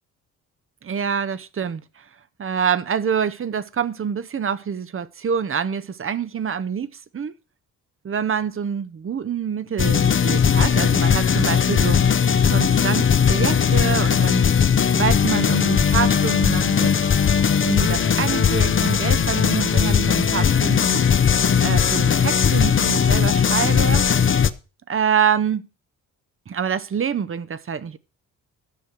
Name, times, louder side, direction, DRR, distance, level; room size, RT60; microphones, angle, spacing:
voice 1, 0.8-2.0 2.4-6.9 7.1-7.3 8.0-12.1 12.5-14.4 15.0-16.9 17.6-21.1 21.6-24.0 24.9-25.7 26.5-28.0, right 7 dB, 40° right, 0.8 m, -26 dB
sound 1, 9.8-24.5, left 7 dB, 35° left, 0.7 m, -18 dB
11.5 x 6.5 x 6.2 m
cardioid pair, 75°, 33 cm